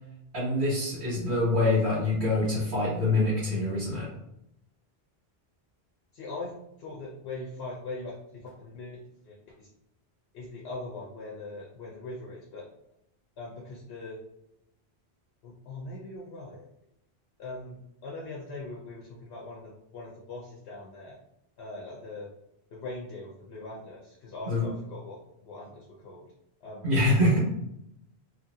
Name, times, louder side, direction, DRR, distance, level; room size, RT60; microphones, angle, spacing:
voice 1, 0.3-4.1 24.5-24.7 26.8-27.4, left 2 dB, 85° right, -9 dB, 1.5 m, -25 dB
voice 2, 6.1-6.5 6.8-8.1 8.4-9.7 10.3-12.6 13.4-14.2 15.4-16.7 17.4-21.2 21.6-22.3 22.7-26.3 26.6-26.9, left 2 dB, 75° left, -4 dB, 0.9 m, -41 dB
2.8 x 2.5 x 2.7 m, 0.80 s
omnidirectional pair, 1.1 m